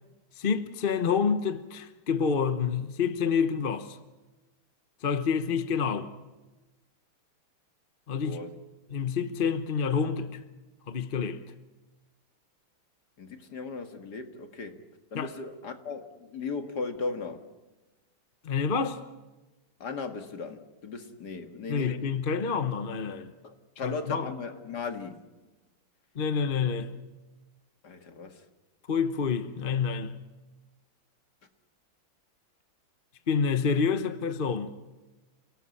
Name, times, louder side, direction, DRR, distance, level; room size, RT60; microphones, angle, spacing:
voice 1, 0.4-4.0 5.0-6.1 8.1-8.4 8.9-10.4 10.9-11.4 15.1-15.3 18.4-19.0 21.7-23.3 23.8-24.3 26.1-26.9 28.9-30.1 33.3-34.7, left 6 dB, 35° left, 0.9 m, -28 dB
voice 2, 8.2-8.6 13.2-14.8 15.1-17.4 19.8-22.0 23.4-25.2 27.8-28.5, left 4 dB, 55° left, 2.3 m, -37 dB
29.5 x 18.0 x 8.5 m
omnidirectional pair, 2.2 m